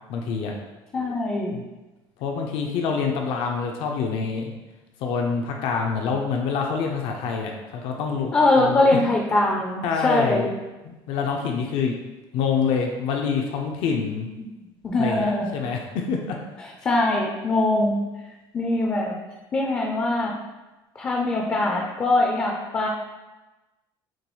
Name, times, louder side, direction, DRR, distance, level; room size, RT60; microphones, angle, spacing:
voice 1, 0.1-0.5 1.5-1.6 2.2-4.5 5.0-9.0 9.8-10.5 10.8-12.0 12.3-14.3 15.0-16.4, left 5 dB, 70° left, 2 dB, 0.6 m, -26 dB
voice 2, 0.9-1.6 8.3-10.5 14.8-15.6 16.6-18.0 18.5-19.2 19.5-20.4 21.0-22.9, left 2 dB, 20° left, 0 dB, 0.4 m, -22 dB
6.1 x 2.3 x 3.1 m, 1.1 s
cardioid pair, 160°, 10 cm